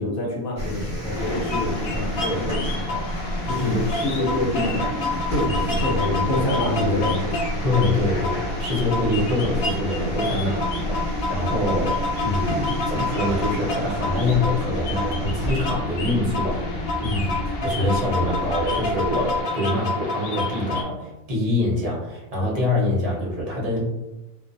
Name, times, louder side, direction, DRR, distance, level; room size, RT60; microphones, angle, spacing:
voice 1, 0.0-4.9 5.3-7.5, left 1 dB, 70° left, -3 dB, 1.0 m, -26 dB
sound 1, 0.5-19.4, equal, 5° left, 0.7 m, -31 dB
sound 2, 1.2-20.8, left 2 dB, 90° left, 0.5 m, -29 dB
voice 2, 7.6-17.4 17.6-23.8, left 2 dB, 40° right, -5 dB, 0.5 m, -25 dB
2.5 x 2.3 x 2.5 m, 1.0 s
omnidirectional pair, 1.6 m